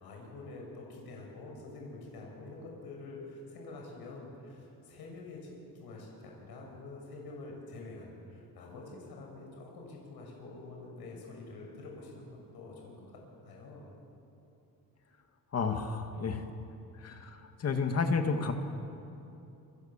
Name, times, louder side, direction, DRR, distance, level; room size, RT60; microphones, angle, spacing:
voice 1, 0.0-13.1 13.4-13.9, left 2 dB, 80° left, -1 dB, 6.5 m, -47 dB
voice 2, 15.5-16.4 17.0-18.5, left 4 dB, 40° left, 5 dB, 2.1 m, -31 dB
28.5 x 25.0 x 7.5 m, 2.9 s
cardioid pair, 170°, 37 cm